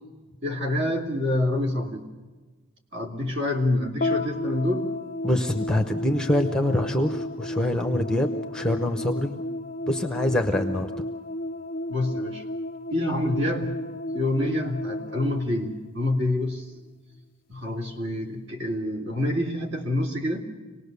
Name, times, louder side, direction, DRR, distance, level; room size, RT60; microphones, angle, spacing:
voice 1, 0.4-2.1 2.9-4.9 11.9-12.4 12.9-13.8 14.1-16.7 17.5-20.4, left 1 dB, 55° right, 1 dB, 2.6 m, -27 dB
sound 1, 4.0-16.5, left 1 dB, 40° left, 0.6 m, -33 dB
voice 2, 5.2-9.4 9.9-10.9, left 1 dB, 5° left, 6 dB, 0.8 m, -25 dB
25.5 x 19.0 x 6.8 m, 1.3 s
head